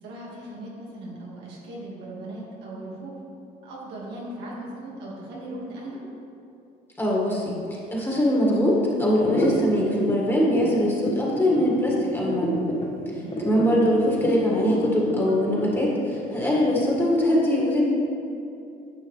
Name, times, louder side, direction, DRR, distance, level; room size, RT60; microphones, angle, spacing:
voice 1, 0.0-3.2 3.6-6.0 13.1-13.5, right 1 dB, 85° right, -4 dB, 1.9 m, -38 dB
voice 2, 7.0-12.6 13.4-17.8, left 1 dB, 15° left, -4 dB, 1.8 m, -22 dB
sound 1, 9.2-17.0, equal, 35° left, 1.2 m, -29 dB
9.6 x 6.2 x 3.3 m, 2.6 s
cardioid pair, 110°, 17 cm